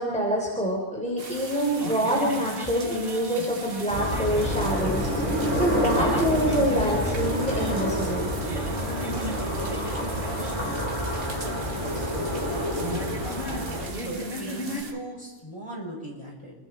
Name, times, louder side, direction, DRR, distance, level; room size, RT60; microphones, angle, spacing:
voice 1, 0.0-8.3, equal, 5° left, -3 dB, 3.7 m, -26 dB
sound 1, 1.2-14.9, right 4 dB, 60° right, 1.8 m, -41 dB
sound 2, 1.5-14.8, equal, 75° right, 7.8 m, -37 dB
sound 3, 3.9-13.9, equal, 30° right, 5.5 m, -28 dB
voice 2, 11.4-13.1 13.4-16.5, right 1 dB, 25° left, -3 dB, 6.3 m, -40 dB
29.0 x 22.5 x 4.4 m, 1.2 s
omnidirectional pair, 1.1 m